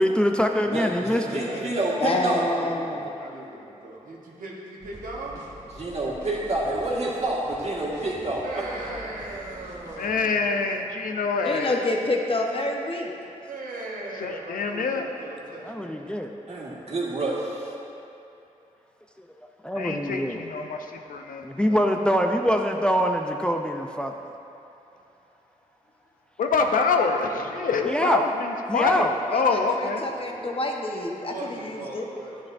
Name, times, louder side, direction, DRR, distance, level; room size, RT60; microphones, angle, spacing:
voice 1, 0.0-1.5 15.6-16.3 19.2-19.3 19.6-20.4 21.4-24.1 27.9-28.2 28.7-29.1, equal, 5° left, 3 dB, 0.4 m, -24 dB
voice 2, 0.7-2.4 5.8-8.5 16.5-17.7, right 2 dB, 50° right, -5 dB, 1.8 m, -28 dB
voice 3, 1.2-5.4 8.4-10.6 13.4-16.1 27.2-27.9 29.0-30.6 31.1-32.4, right 2 dB, 90° right, -3 dB, 1.2 m, -39 dB
voice 4, 2.0-3.0 11.4-13.1 29.3-32.1, left 2 dB, 40° left, 0 dB, 0.9 m, -28 dB
sound 1, 4.8-10.2, equal, 25° right, 1.5 m, -46 dB
voice 5, 10.0-11.9 14.2-15.1 19.7-21.5 26.4-30.0, left 4 dB, 90° left, 4 dB, 0.6 m, -26 dB
10.5 x 7.4 x 2.6 m, 2.8 s
cardioid pair, 65°, 14 cm